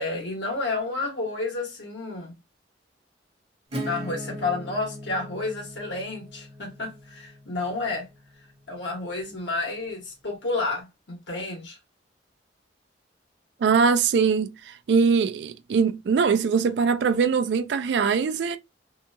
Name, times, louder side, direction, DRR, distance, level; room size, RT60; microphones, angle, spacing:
voice 1, 0.0-2.3 3.8-8.1 8.7-11.8, left 3 dB, 75° left, 1.2 m, -30 dB
Acoustic guitar / Strum, 3.7-9.2, equal, 30° right, 0.7 m, -39 dB
voice 2, 13.6-18.6, right 5 dB, 70° right, 0.3 m, -22 dB
2.7 x 2.3 x 2.6 m
head